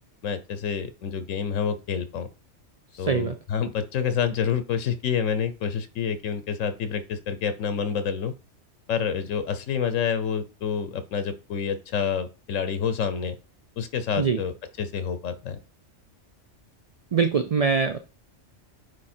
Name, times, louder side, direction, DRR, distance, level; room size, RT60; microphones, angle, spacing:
voice 1, 0.2-2.3 3.0-8.3 8.9-13.4 13.8-15.6, left 7 dB, 85° left, 11 dB, 1.1 m, -28 dB
voice 2, 2.9-3.3 14.2-14.4 17.1-18.0, right 6 dB, 55° right, 8 dB, 0.4 m, -23 dB
9.2 x 3.3 x 4.3 m, 0.33 s
omnidirectional pair, 1.3 m